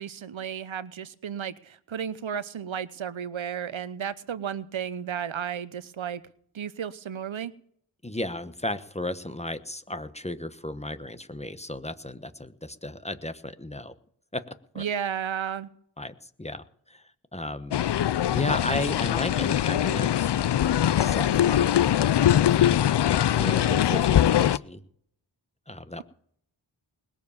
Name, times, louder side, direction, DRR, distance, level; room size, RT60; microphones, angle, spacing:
voice 1, 0.0-6.2 6.5-7.5 14.8-15.7, right 8 dB, 85° right, 16 dB, 0.9 m, -33 dB
voice 2, 8.0-13.9 14.3-14.4 14.7-14.8 16.0-17.8 18.3-20.3 21.0-21.9 22.2-24.8 25.7-26.0, left 1 dB, 15° left, 11 dB, 1.1 m, -35 dB
sound 1, 17.7-24.6, left 11 dB, 65° left, 0.5 m, -22 dB
20.5 x 7.2 x 7.2 m, 0.64 s
wide cardioid pair, 75°, 46 cm